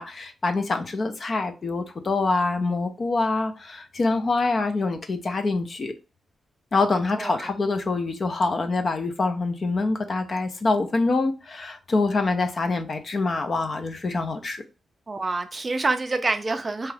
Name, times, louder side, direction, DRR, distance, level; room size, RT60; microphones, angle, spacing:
voice 1, 0.0-5.9 6.7-14.6, left 3 dB, 45° left, 0.5 m, -25 dB
voice 2, 7.1-7.5 15.1-16.9, right 3 dB, 30° right, 0.4 m, -27 dB
2.9 x 2.3 x 3.2 m
cardioid pair, 110°, 0 cm